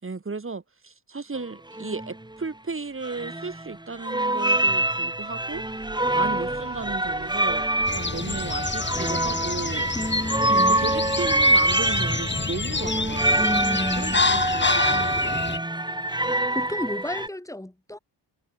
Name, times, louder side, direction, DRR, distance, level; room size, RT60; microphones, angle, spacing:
voice 1, 0.0-5.6 6.1-9.9 10.7-15.7, right 4 dB, 30° right, 3.2 m, -35 dB
sound 1, 1.4-1.5 1.7-2.1 3.0-3.8 4.0-17.3, right 1 dB, 10° right, 3.0 m, -25 dB
sound 2, 5.2-14.9, right 7 dB, 75° right, 5.3 m, -45 dB
sound 3, 7.9-15.6, left 4 dB, 25° left, 1.7 m, -28 dB
voice 2, 9.9-10.8 13.3-14.2 16.2-18.0, left 1 dB, 5° left, 5.0 m, -31 dB
wide cardioid pair, 135°, 42 cm